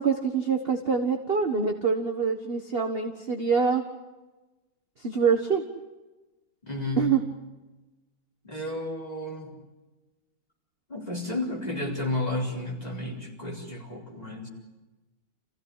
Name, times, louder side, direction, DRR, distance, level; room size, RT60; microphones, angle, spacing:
voice 1, 0.0-3.8 5.0-5.6 7.0-7.2, right 5 dB, 30° right, 4 dB, 1.4 m, -25 dB
voice 2, 6.6-7.0 8.4-9.5 10.9-14.5, left 2 dB, 20° left, -1 dB, 4.6 m, -32 dB
27.5 x 16.0 x 10.0 m, 1.1 s
omnidirectional pair, 2.2 m